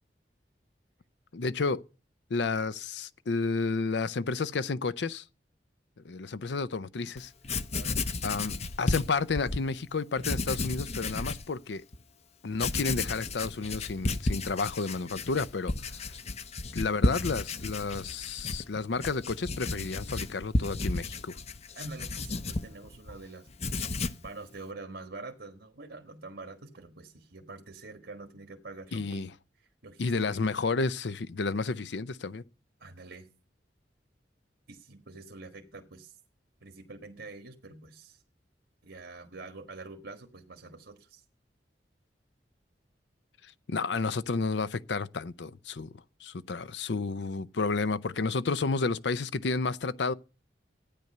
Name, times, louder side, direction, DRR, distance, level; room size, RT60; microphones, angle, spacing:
voice 1, 1.3-1.8 2.3-5.2 6.0-7.3 8.2-11.8 12.4-16.1 16.7-21.4 28.9-29.3 30.0-32.4 43.7-45.9 46.2-50.1, left 4 dB, 75° left, 0.6 m, -31 dB
Writing, 7.2-7.3 7.4-9.6 10.2-11.5 11.9-12.0 12.5-23.2 23.5-24.3, left 3 dB, 40° left, 0.7 m, -33 dB
voice 2, 7.7-8.0 21.7-23.5 24.2-29.2 29.6-30.4 32.8-33.3 34.7-36.2 36.6-38.2 38.8-41.2, right 3 dB, 75° right, 1.5 m, -46 dB
13.5 x 9.3 x 6.6 m
head